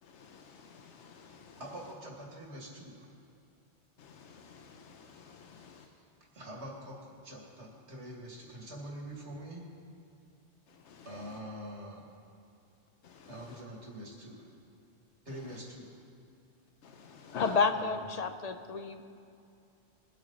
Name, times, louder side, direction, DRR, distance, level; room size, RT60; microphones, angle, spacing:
voice 1, 0.0-1.9 4.0-5.9 10.7-11.4 13.0-13.6 15.3-15.6 16.8-17.6, left 6 dB, 85° left, 4 dB, 1.1 m, -48 dB
voice 2, 1.6-3.0 5.6-5.9 6.3-7.0 7.2-9.6 11.0-12.1 13.3-14.5 15.3-15.9 17.7-18.0, equal, 85° right, -2 dB, 2.6 m, -45 dB
voice 3, 17.4-19.1, left 5 dB, 45° left, 9 dB, 0.6 m, -30 dB
22.0 x 8.4 x 4.0 m, 2.5 s
omnidirectional pair, 1.1 m